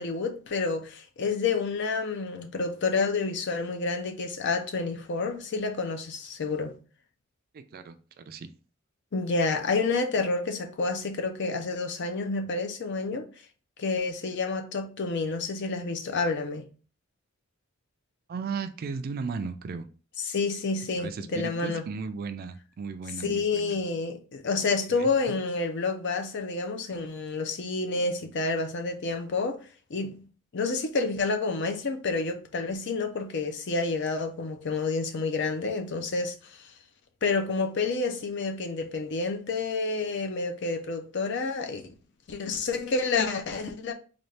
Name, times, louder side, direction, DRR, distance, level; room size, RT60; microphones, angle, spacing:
voice 1, 0.0-6.7 9.1-13.3 13.8-16.7 20.3-21.8 23.2-29.6 29.9-30.2 30.5-36.7 37.2-41.8 42.3-43.9, left 4 dB, 60° left, 0.6 m, -29 dB
voice 2, 7.5-8.5 18.3-19.9 21.0-23.8 24.9-25.1, right 5 dB, 45° right, 0.3 m, -36 dB
4.0 x 2.4 x 3.2 m
head